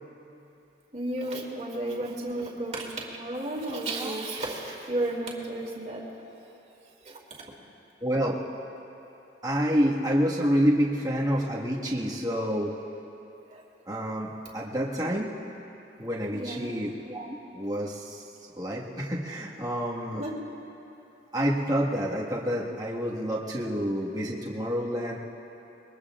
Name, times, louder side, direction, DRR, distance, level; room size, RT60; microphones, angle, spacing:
voice 1, 0.9-6.0 7.0-7.2 13.5-13.6 16.3-16.7 20.2-20.4, right 1 dB, 40° right, -2 dB, 2.4 m, -33 dB
voice 2, 8.0-8.4 9.4-12.7 13.9-15.3 16.0-18.2 18.6-20.2 21.3-25.2, equal, 20° right, -5 dB, 1.7 m, -28 dB
26.5 x 22.0 x 2.5 m, 2.9 s
head